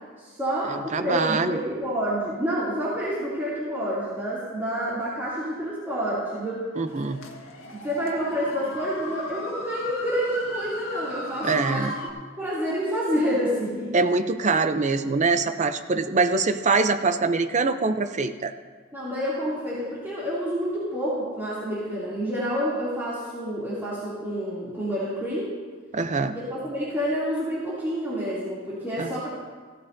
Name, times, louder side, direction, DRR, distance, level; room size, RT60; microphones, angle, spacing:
voice 1, 0.2-6.7 7.7-13.9 18.9-25.5 26.3-29.3, equal, 10° right, -11 dB, 2.7 m, -28 dB
voice 2, 0.7-1.6 6.8-7.2 11.4-11.9 13.9-18.5 25.9-26.3 29.0-29.1, right 4 dB, 35° right, 9 dB, 0.6 m, -24 dB
sound 1, 6.9-12.1, left 1 dB, 85° left, 1.5 m, -36 dB
16.0 x 13.5 x 2.7 m, 1.5 s
head